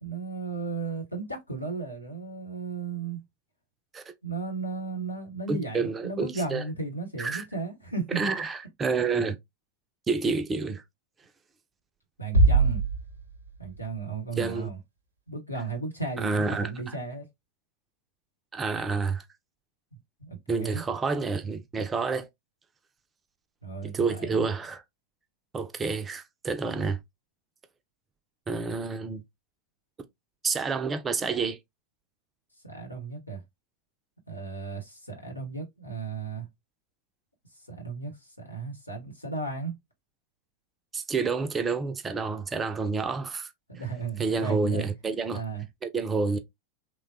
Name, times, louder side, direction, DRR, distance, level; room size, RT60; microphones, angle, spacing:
voice 1, 0.0-3.2 4.2-8.2 12.2-12.8 13.6-14.8 15.3-17.3 20.2-20.8 23.6-24.4 32.6-33.4 34.3-36.5 37.7-39.8 43.7-44.9 45.3-45.6, right 4 dB, 85° left, 0.9 m, -35 dB
voice 2, 5.5-6.6 7.2-7.4 8.1-9.4 10.1-10.8 14.4-14.7 16.2-16.7 18.5-19.2 20.5-22.3 23.8-24.8 25.5-27.0 28.5-29.2 30.4-31.6 40.9-43.5 44.2-45.4 45.8-46.4, right 4 dB, 20° right, 0.4 m, -29 dB
sound 1, 12.3-14.3, right 3 dB, 80° right, 0.6 m, -23 dB
3.1 x 2.1 x 2.6 m
figure-of-eight pair, 90°, 0 cm